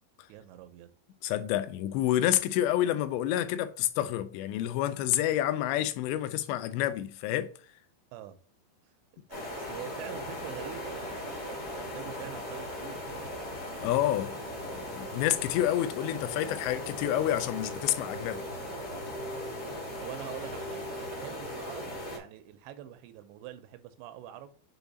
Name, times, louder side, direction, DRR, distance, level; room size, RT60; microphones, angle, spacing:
voice 1, 0.3-0.9 8.1-8.4 9.3-13.0 19.9-24.5, right 12 dB, 85° right, 2.9 m, -45 dB
voice 2, 1.2-7.5 13.8-18.4, left 12 dB, 90° left, 2.9 m, -29 dB
sound 1, 9.3-22.2, left 1 dB, 35° left, 1.5 m, -38 dB
7.1 x 3.6 x 4.0 m
omnidirectional pair, 5.0 m